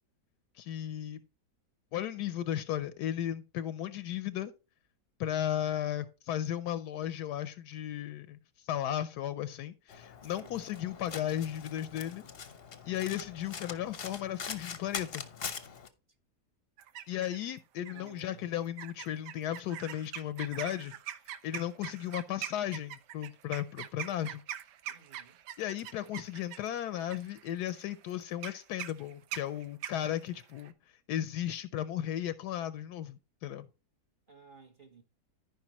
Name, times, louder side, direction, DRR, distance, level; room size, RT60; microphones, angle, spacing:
voice 1, 0.6-1.2 1.9-4.5 5.2-8.4 8.6-12.2 12.9-15.2 17.1-20.9 21.4-24.4 25.6-30.7 31.1-33.7, left 11 dB, 80° left, 1.1 m, -35 dB
Domestic sounds home sounds, 9.9-15.9, left 6 dB, 45° left, 0.8 m, -43 dB
voice 2, 10.2-10.7 17.9-18.5 24.9-25.4 34.3-35.0, right 4 dB, 35° right, 1.2 m, -56 dB
sound 1, 16.8-17.5 17.9-18.2 18.8-30.7, right 11 dB, 85° right, 1.3 m, -43 dB
14.0 x 5.3 x 2.9 m
omnidirectional pair, 1.8 m